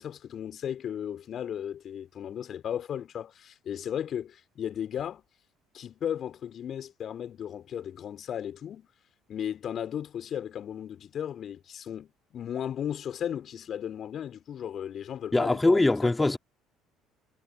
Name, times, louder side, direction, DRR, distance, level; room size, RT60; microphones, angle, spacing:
voice 1, 0.0-5.2 5.7-8.9 9.3-16.3, left 9 dB, 50° left, 3.6 m, -35 dB
voice 2, 15.3-16.4, left 2 dB, 15° left, 3.2 m, -22 dB
figure-of-eight pair, 55°, 0 cm